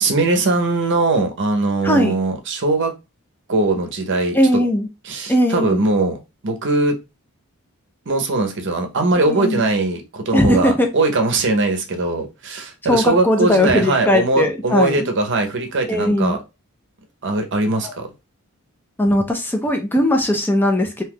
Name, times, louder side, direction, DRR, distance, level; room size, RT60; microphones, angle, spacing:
voice 1, 0.0-2.9 3.5-4.4 5.1-7.0 8.1-16.4 17.2-18.1, right 2 dB, 55° right, 0.7 m, -20 dB
voice 2, 1.8-2.2 4.3-4.9 5.3-5.8 9.2-9.7 10.3-10.9 12.9-15.1 15.9-16.4 17.8-17.9 19.0-21.0, left 1 dB, 10° left, 0.4 m, -18 dB
2.7 x 2.3 x 3.5 m
head